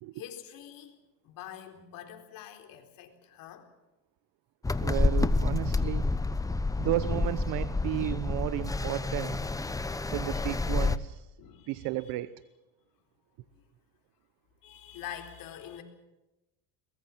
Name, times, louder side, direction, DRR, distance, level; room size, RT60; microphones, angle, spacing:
voice 1, 0.1-3.7 9.8-10.1 10.4-10.5 11.4-12.1 13.5-13.7 14.6-15.8, left 10 dB, 60° left, 4.3 m, -46 dB
sound 1, 4.6-11.0, left 3 dB, 10° left, 0.9 m, -29 dB
voice 2, 4.8-6.0 6.8-9.4 10.1-11.3 11.7-12.3, right 16 dB, 65° right, 0.9 m, -33 dB
22.5 x 20.5 x 7.4 m
cardioid pair, 120°, 38 cm